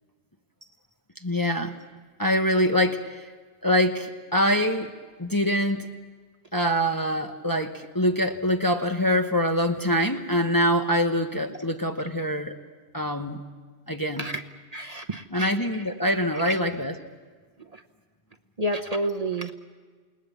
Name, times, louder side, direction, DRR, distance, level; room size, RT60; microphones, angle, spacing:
voice 1, 1.2-1.7 2.2-3.3 3.6-4.9 5.2-5.9 6.5-12.5 12.9-13.4 13.9-14.3 15.3-16.9, equal, 20° left, 4 dB, 0.9 m, -24 dB
voice 2, 14.7-15.8 16.3-16.5 17.6-17.8 18.6-19.5, right 1 dB, 35° right, 5 dB, 1.0 m, -30 dB
28.5 x 19.5 x 7.1 m, 1.5 s
omnidirectional pair, 1.2 m